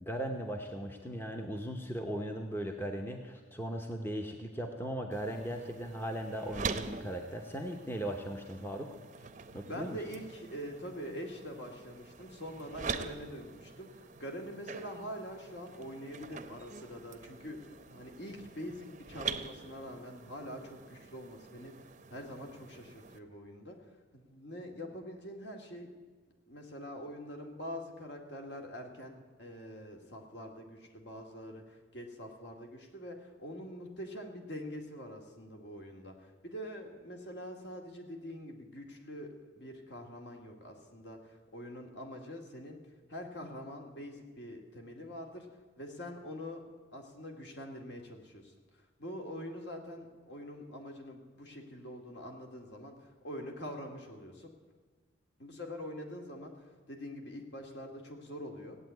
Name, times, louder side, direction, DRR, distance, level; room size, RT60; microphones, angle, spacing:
voice 1, 0.0-9.0 9.5-10.0, right 1 dB, 10° left, 3 dB, 0.8 m, -38 dB
sound 1, 5.1-23.2, right 5 dB, 35° right, 0.7 m, -45 dB
voice 2, 9.5-21.7 22.1-23.8 24.1-25.9 26.5-42.8 43.1-45.5 45.8-46.6 46.9-54.5 55.4-58.8, equal, 60° left, 2 dB, 2.2 m, -44 dB
16.5 x 8.6 x 9.3 m, 1.4 s
head